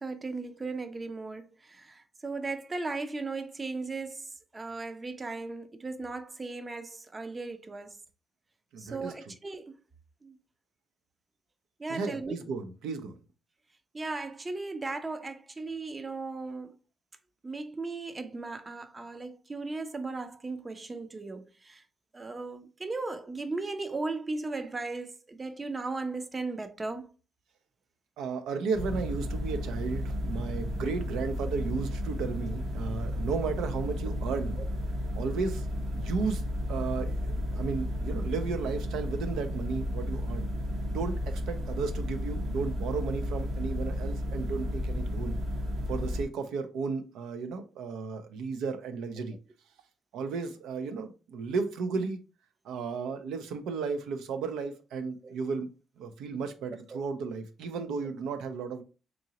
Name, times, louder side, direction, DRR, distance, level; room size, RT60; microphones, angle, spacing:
voice 1, 0.0-8.0 8.8-9.8 10.2-10.4 11.8-12.4 13.9-16.8 17.4-21.8 22.1-27.1 53.1-53.2 55.2-55.4 56.9-57.0, right 3 dB, 25° right, 0.5 m, -37 dB
voice 2, 8.7-9.1 11.9-13.2 28.2-34.6 35.1-35.7 35.9-36.4 36.7-40.5 40.9-45.4 45.9-49.4 50.1-52.2 52.6-55.7 56.0-58.8, right 5 dB, 85° right, 0.4 m, -34 dB
sound 1, 28.7-46.2, equal, 65° right, 0.9 m, -33 dB
3.8 x 2.8 x 2.8 m
cardioid pair, 90°, 0 cm